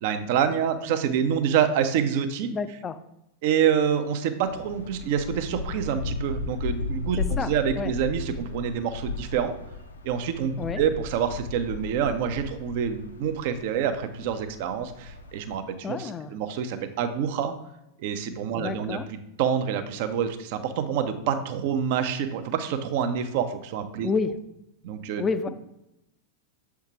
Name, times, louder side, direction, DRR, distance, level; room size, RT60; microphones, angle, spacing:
voice 1, 0.0-2.5 3.4-9.5 10.0-17.5 18.0-19.0 19.4-24.1 24.8-25.2, right 8 dB, 50° right, 9 dB, 0.6 m, -27 dB
voice 2, 2.5-3.0 7.2-7.5 7.8-7.9 10.6-10.8 15.8-16.3 18.6-19.1 24.0-24.4 25.2-25.5, left 5 dB, 20° left, 11 dB, 0.4 m, -29 dB
sound 1, 4.4-15.6, left 3 dB, 75° left, 0.6 m, -35 dB
7.2 x 4.6 x 2.9 m, 0.88 s
figure-of-eight pair, 90°, 0 cm